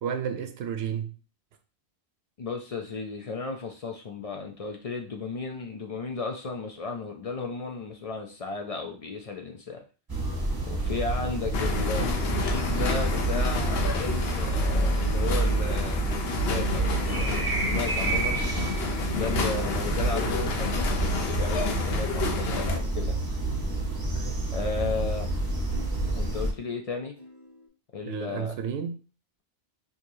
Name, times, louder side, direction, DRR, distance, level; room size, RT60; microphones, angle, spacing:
voice 1, 0.0-1.1 24.1-24.4 28.1-29.0, right 7 dB, 75° right, 0.8 m, -32 dB
voice 2, 2.4-9.8 10.7-16.0 16.5-18.4 19.2-20.8 21.3-23.2 24.5-25.3 26.2-27.2 27.9-28.5, left 4 dB, 50° left, 0.4 m, -34 dB
sound 1, 10.1-26.5, right 2 dB, 25° right, 0.8 m, -28 dB
sound 2, 11.5-22.8, left 5 dB, 70° left, 0.9 m, -31 dB
sound 3, 17.7-26.8 27.2-27.7, left 1 dB, 35° left, 1.7 m, -48 dB
4.6 x 2.7 x 2.7 m
omnidirectional pair, 1.1 m